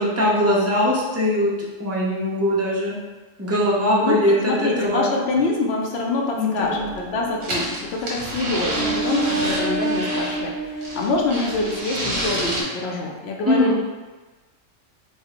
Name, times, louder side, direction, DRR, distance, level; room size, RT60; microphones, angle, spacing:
voice 1, 0.0-3.0 3.4-5.1 6.4-6.9 13.4-13.7, left 1 dB, 25° right, -6 dB, 0.3 m, -21 dB
voice 2, 4.0-13.8, left 3 dB, 65° left, 0 dB, 0.7 m, -25 dB
sound 1, 6.6-8.3 8.7-11.8, right 2 dB, 55° right, 0.8 m, -29 dB
sound 2, 7.4-10.4 10.8-12.6, right 1 dB, 85° right, 1.2 m, -28 dB
4.5 x 2.1 x 2.9 m, 1.3 s
omnidirectional pair, 1.3 m